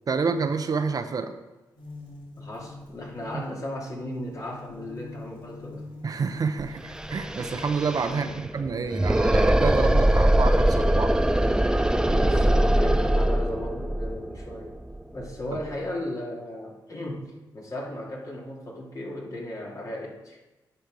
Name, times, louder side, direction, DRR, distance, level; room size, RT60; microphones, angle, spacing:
voice 1, 0.1-1.4 3.3-3.4 6.0-11.1, right 5 dB, 50° right, 8 dB, 0.7 m, -28 dB
sound 1, 1.8-7.7, left 2 dB, 75° left, 2.9 m, -44 dB
voice 2, 2.4-5.9 8.1-8.5 12.0-14.7 15.1-20.4, left 1 dB, 45° left, -2 dB, 2.5 m, -36 dB
sound 2, 6.6-6.7 6.9-15.7, right 1 dB, 10° right, 0.4 m, -22 dB
10.0 x 5.6 x 4.8 m, 1.1 s
cardioid pair, 60°, 8 cm